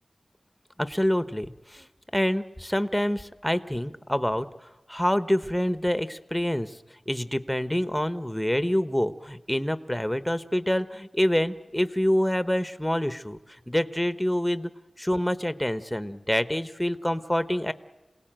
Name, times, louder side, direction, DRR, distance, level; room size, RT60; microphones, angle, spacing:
voice 1, 0.8-1.9 2.1-4.5 4.9-6.8 7.1-13.4 13.7-14.7 15.0-17.7, equal, 10° left, 12 dB, 1.1 m, -26 dB
28.0 x 18.0 x 9.0 m, 1.1 s
wide cardioid pair, 65°, 0 cm